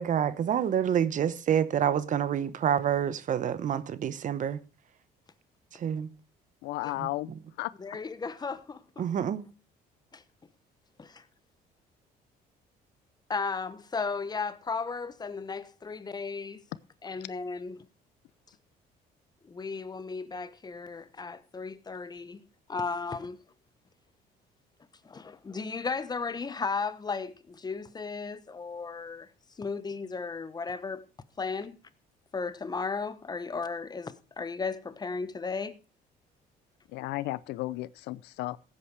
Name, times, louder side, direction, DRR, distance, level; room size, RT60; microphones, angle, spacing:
voice 1, 0.0-4.6 5.7-6.1 7.0-7.1 9.0-9.4, right 9 dB, 50° right, 1.0 m, -27 dB
voice 2, 6.6-7.3 7.6-7.7 36.9-38.6, left 18 dB, 85° left, 0.6 m, -34 dB
voice 3, 7.8-9.0 10.1-10.2 11.0-11.2 13.3-16.6 17.0-17.9 19.4-22.4 22.7-23.4 25.0-29.3 29.6-31.0 31.4-31.8 32.3-35.8, left 4 dB, 25° left, 1.1 m, -35 dB
15.5 x 8.6 x 4.7 m
cardioid pair, 110°, 17 cm